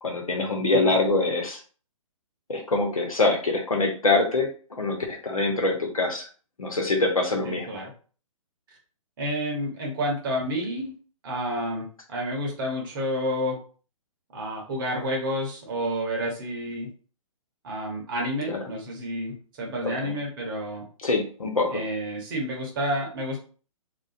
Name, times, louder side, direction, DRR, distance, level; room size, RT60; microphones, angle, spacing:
voice 1, 0.0-1.6 2.5-6.3 6.6-7.8 18.5-18.6 19.8-20.1 21.0-21.8, left 2 dB, 75° left, 2 dB, 0.8 m, -25 dB
voice 2, 7.4-7.9 9.2-10.9 11.2-13.6 14.3-16.9 17.6-20.8 21.7-23.4, equal, 35° right, -1 dB, 0.8 m, -30 dB
2.4 x 2.1 x 2.4 m, 0.39 s
figure-of-eight pair, 125°, 18 cm